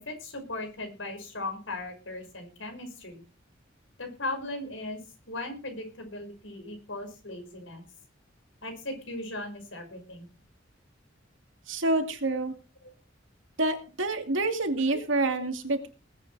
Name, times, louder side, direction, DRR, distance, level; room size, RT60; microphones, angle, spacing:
voice 1, 0.0-3.2 4.0-5.0 5.3-7.8 8.6-10.3 12.8-12.9 14.9-15.0 15.3-15.4, left 2 dB, 75° left, 5 dB, 5.6 m, -38 dB
voice 2, 11.7-12.5 13.6-15.9, right 2 dB, 75° right, 6 dB, 2.5 m, -27 dB
19.5 x 8.7 x 4.8 m, 0.33 s
head